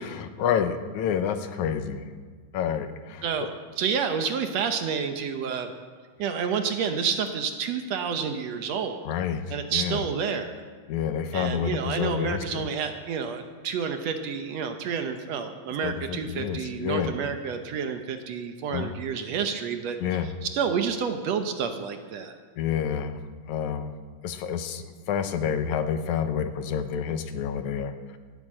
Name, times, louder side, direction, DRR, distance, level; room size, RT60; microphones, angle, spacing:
voice 1, 0.0-2.1 2.5-3.5 9.0-10.0 10.9-12.7 15.8-17.1 18.7-18.9 20.0-20.3 22.6-23.2 23.5-23.9 24.2-28.2, left 8 dB, 80° left, 9 dB, 2.2 m, -29 dB
voice 2, 3.8-5.7 6.2-9.0 9.5-10.5 11.3-20.0 20.5-22.4, right 6 dB, 70° right, 7 dB, 1.9 m, -29 dB
17.5 x 9.1 x 7.6 m, 1.5 s
omnidirectional pair, 3.5 m